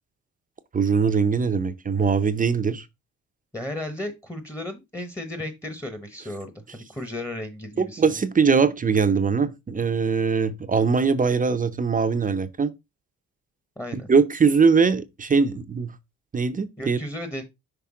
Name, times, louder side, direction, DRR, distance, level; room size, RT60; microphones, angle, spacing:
voice 1, 0.7-2.8 7.8-12.7 13.9-15.9 16.3-17.0, right 5 dB, 25° right, 0.7 m, -21 dB
voice 2, 3.5-8.0 13.8-14.1 16.8-17.4, left 1 dB, 10° left, 1.1 m, -34 dB
5.9 x 3.3 x 4.8 m
cardioid pair, 90°, 30 cm